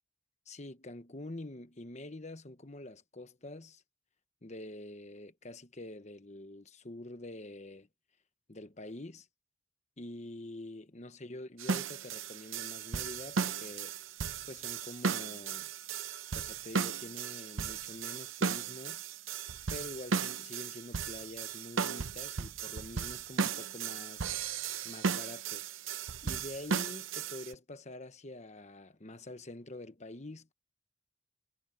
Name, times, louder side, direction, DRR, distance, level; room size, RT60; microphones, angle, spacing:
voice 1, 0.5-3.8 4.4-7.9 8.5-9.3 10.0-14.0 14.5-15.7 16.3-19.0 19.7-24.3 24.8-25.6 26.2-30.5, left 1 dB, 35° left, 1.2 m, -46 dB
sound 1, 11.6-27.5, right 6 dB, 90° right, 0.8 m, -36 dB
head